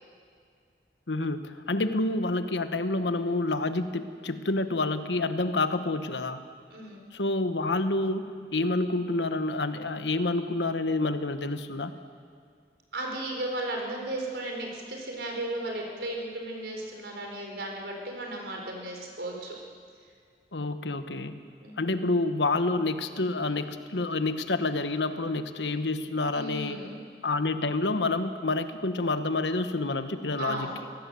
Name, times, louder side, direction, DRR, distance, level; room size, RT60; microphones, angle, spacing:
voice 1, 1.1-6.4 7.1-11.9 20.5-21.4 21.8-26.8 27.2-30.7, left 2 dB, 90° left, 9 dB, 1.2 m, -28 dB
voice 2, 6.7-7.0 12.9-19.6 21.6-22.0 26.3-27.0 30.4-30.8, right 1 dB, 75° right, 1 dB, 4.4 m, -35 dB
24.5 x 17.0 x 7.7 m, 2.1 s
head